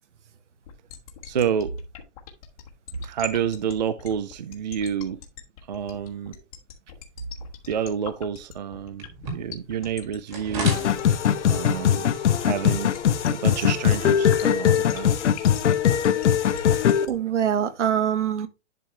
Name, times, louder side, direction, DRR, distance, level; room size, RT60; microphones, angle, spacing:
sound 1, 0.6-17.1, left 11 dB, 30° left, 1.3 m, -41 dB
voice 1, 1.3-1.7 3.0-5.2 5.7-6.3 7.7-9.1 9.3-10.8 11.5-12.1 12.4-12.9 13.3-15.1, right 8 dB, 40° right, 0.4 m, -28 dB
sound 2, 9.0-16.9, right 4 dB, 20° right, 2.0 m, -40 dB
sound 3, 10.6-17.1, left 9 dB, 70° left, 0.9 m, -21 dB
voice 2, 16.5-18.5, right 9 dB, 75° right, 1.3 m, -25 dB
10.5 x 4.7 x 3.2 m
hypercardioid pair, 175°, 36 cm